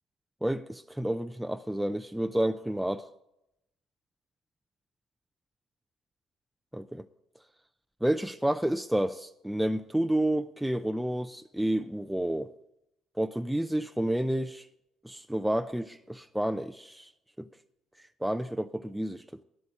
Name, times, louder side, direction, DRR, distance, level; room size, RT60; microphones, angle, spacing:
voice 1, 0.4-3.1 6.7-7.1 8.0-12.5 13.2-14.7 15.0-17.1 17.4-17.5 18.2-19.4, right 1 dB, 5° right, 0.5 m, -30 dB
9.8 x 7.9 x 8.9 m
supercardioid pair, 80°, 0 cm